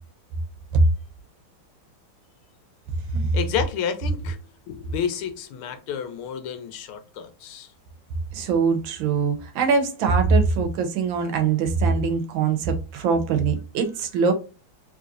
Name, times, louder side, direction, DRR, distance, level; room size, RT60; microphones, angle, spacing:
voice 1, 3.3-4.4 4.7-7.7, left 8 dB, 90° left, 1.6 m, -30 dB
voice 2, 8.3-14.3, right 5 dB, 75° right, 1.4 m, -22 dB
3.8 x 3.1 x 2.5 m
omnidirectional pair, 2.3 m